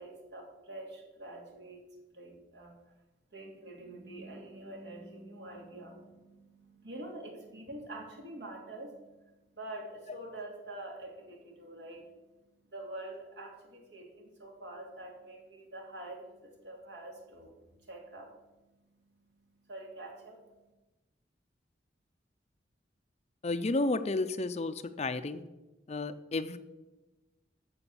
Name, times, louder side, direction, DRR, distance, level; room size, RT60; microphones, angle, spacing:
voice 1, 0.0-2.8 3.3-20.7, right 1 dB, 70° right, 1 dB, 2.8 m, -46 dB
voice 2, 23.4-25.4 25.9-26.6, left 2 dB, 35° left, 11 dB, 0.5 m, -32 dB
14.0 x 5.1 x 7.0 m, 1.1 s
head